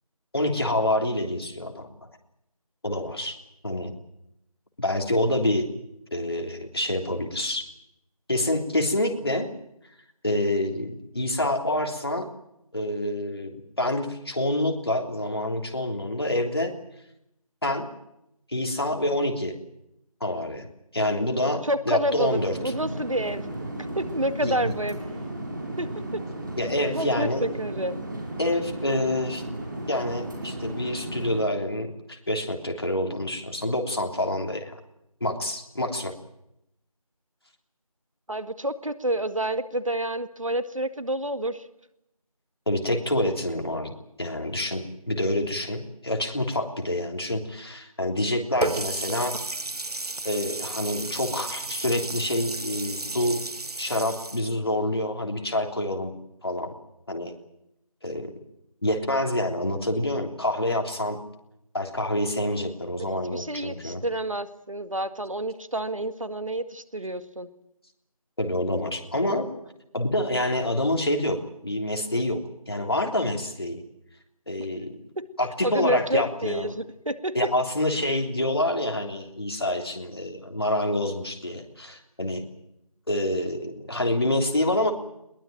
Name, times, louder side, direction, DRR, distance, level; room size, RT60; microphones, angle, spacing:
voice 1, 0.3-1.9 2.8-3.4 3.6-3.9 4.8-5.7 6.1-7.6 8.3-9.5 10.2-12.3 12.7-16.7 17.6-17.9 18.5-19.6 20.2-20.7 20.9-22.7 24.4-24.7 26.6-27.4 28.4-29.4 29.9-34.7 35.2-36.1 42.7-43.9 44.2-49.3 50.2-53.4 53.8-56.1 56.4-56.7 57.1-57.4 58.0-58.3 58.8-61.2 61.7-64.0 68.4-69.5 69.9-73.8 74.5-74.9 75.4-76.7 77.4-82.4 83.1-84.9, left 1 dB, 40° left, 3 dB, 3.4 m, -27 dB
voice 2, 21.6-23.5 24.0-25.0 25.8-26.2 26.9-28.0 38.3-41.7 63.0-67.5 74.6-74.7 75.2-75.3 75.6-77.4, right 1 dB, 60° right, 11 dB, 1.9 m, -29 dB
sound 1, 22.1-31.4, right 1 dB, 35° right, 6.3 m, -35 dB
Water tap faucet, 48.6-54.4, right 2 dB, 85° right, 0.9 m, -33 dB
21.5 x 20.5 x 9.1 m, 0.81 s
figure-of-eight pair, 175°, 19 cm